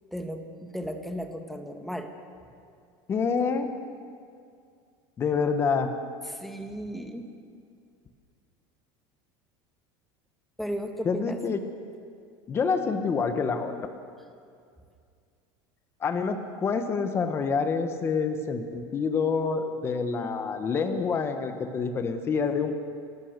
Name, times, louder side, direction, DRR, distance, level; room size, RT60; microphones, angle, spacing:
voice 1, 0.1-2.1 6.3-7.4 10.6-11.4, equal, ahead, 5 dB, 1.5 m, -35 dB
voice 2, 3.1-3.7 5.2-5.9 11.0-11.6 12.5-13.9 16.0-22.7, left 5 dB, 25° left, 7 dB, 1.3 m, -27 dB
29.0 x 14.5 x 6.8 m, 2.3 s
cardioid pair, 160°, 11 cm